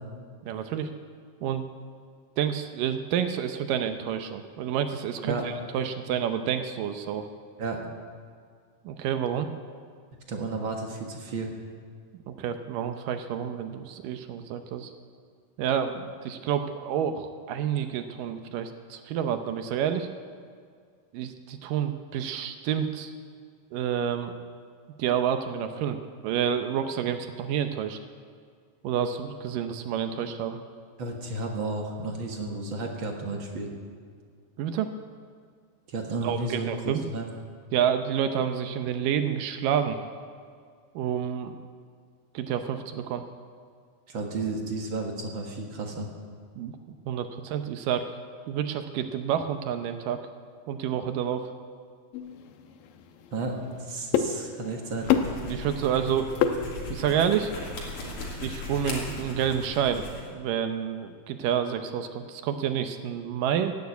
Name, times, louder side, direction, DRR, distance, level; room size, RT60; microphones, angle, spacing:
voice 1, 0.4-0.9 1.4-1.6 2.4-7.3 8.9-9.5 12.3-14.9 15.6-20.1 21.1-23.1 23.7-24.3 25.0-26.0 26.2-28.0 28.8-30.6 34.6-34.9 36.2-37.0 37.7-40.0 41.0-41.6 42.3-43.2 46.6-46.7 47.1-48.1 48.5-50.2 50.7-51.5 55.4-56.3 56.9-57.5 58.4-60.1 60.3-63.7, right 8 dB, 75° right, 8 dB, 2.3 m, -29 dB
voice 2, 10.3-11.5 31.0-33.7 35.9-37.3 44.1-46.1 53.3-55.1, right 3 dB, 50° right, 2 dB, 1.6 m, -32 dB
sound 1, 52.1-57.2, left 8 dB, 75° left, 2.5 m, -30 dB
sound 2, 54.9-60.3, left 2 dB, 55° left, 4.1 m, -38 dB
16.0 x 9.5 x 9.4 m, 2.1 s
omnidirectional pair, 4.2 m